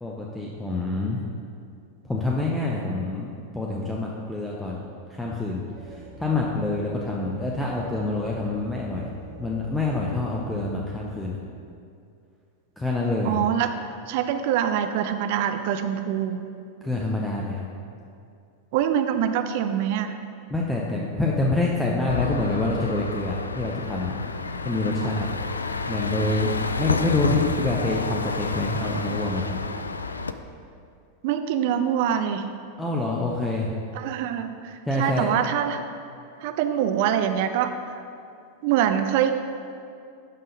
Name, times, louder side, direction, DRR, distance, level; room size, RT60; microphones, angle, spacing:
voice 1, 0.0-1.2 2.1-3.3 3.5-9.1 9.4-11.4 12.8-13.4 16.8-17.6 20.5-24.1 24.6-25.3 25.9-29.6 32.8-33.7 34.9-35.3, left 2 dB, 5° left, -3 dB, 0.7 m, -26 dB
sound 1, 5.7-11.1, left 2 dB, 25° right, 1.6 m, -44 dB
voice 2, 13.2-13.7 14.1-16.4 18.7-20.2 25.0-25.2 31.2-32.5 33.9-35.9 36.4-38.0 38.6-39.3, right 9 dB, 50° right, 8 dB, 0.5 m, -24 dB
sound 2, 22.1-30.3, left 4 dB, 75° left, 0.3 m, -29 dB
11.0 x 3.8 x 5.2 m, 2.4 s
figure-of-eight pair, 90°, 0 cm